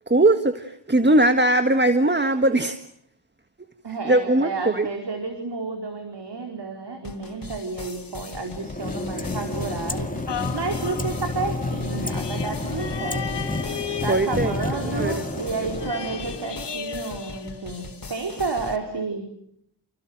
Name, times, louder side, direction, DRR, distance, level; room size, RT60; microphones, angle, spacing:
voice 1, 0.1-2.8 4.0-4.9 14.1-14.5 14.9-15.1, right 2 dB, 25° right, 8 dB, 1.7 m, -20 dB
voice 2, 3.8-10.1 10.5-13.4 14.0-19.2, right 4 dB, 70° right, 3 dB, 4.6 m, -31 dB
sound 1, 7.0-18.8, left 3 dB, 55° left, 4.0 m, -41 dB
sound 2, 8.4-16.7, left 2 dB, 20° left, 2.4 m, -30 dB
sound 3, 10.3-18.1 18.6-18.7, left 6 dB, 75° left, 2.0 m, -36 dB
30.0 x 29.5 x 6.5 m, 0.69 s
wide cardioid pair, 85°, 42 cm